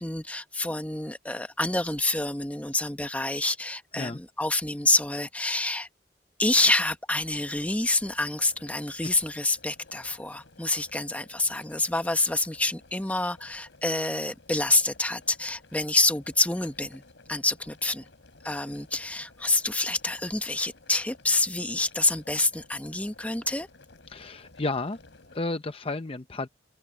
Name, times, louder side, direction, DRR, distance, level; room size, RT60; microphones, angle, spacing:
voice 1, 0.0-5.9 6.4-17.0 17.3-18.1 18.4-23.7, left 2 dB, 10° left, 1.0 m, -27 dB
Boiling water, 7.2-25.4, left 3 dB, 80° left, 3.5 m, -55 dB
voice 2, 24.1-25.0 25.3-26.5, left 2 dB, 30° left, 0.7 m, -32 dB
head